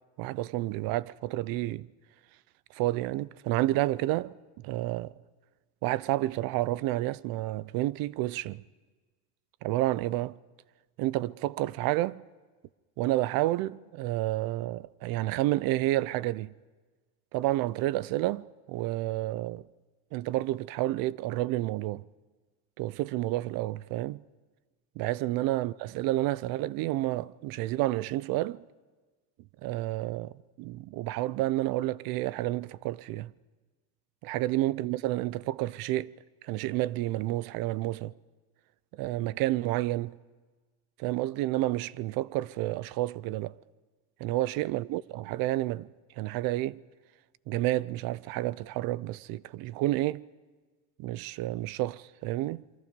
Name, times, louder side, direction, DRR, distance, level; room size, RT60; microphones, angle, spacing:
voice 1, 0.2-1.9 2.7-4.4 4.6-5.2 5.8-8.6 9.6-10.4 11.0-12.2 13.0-16.5 17.3-19.7 20.1-22.0 22.8-24.2 25.0-28.6 29.6-33.3 34.2-36.1 36.4-38.1 38.9-40.2 41.0-43.6 44.2-45.9 46.2-46.8 47.5-50.3 51.0-52.6, right 16 dB, 55° right, 0.6 m, -30 dB
27.0 x 24.0 x 5.2 m
cardioid pair, 140°, 43 cm